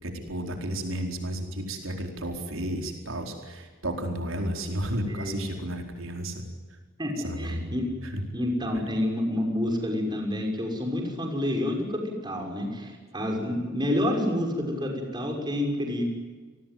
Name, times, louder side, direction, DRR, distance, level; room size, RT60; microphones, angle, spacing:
voice 1, 0.0-6.4 7.2-7.7 8.0-8.2 8.7-8.8, right 1 dB, 75° right, 3 dB, 4.5 m, -32 dB
voice 2, 5.1-5.4 7.0-7.9 8.3-16.0, left 1 dB, 20° right, 2 dB, 6.0 m, -28 dB
30.0 x 20.0 x 9.4 m, 1.4 s
head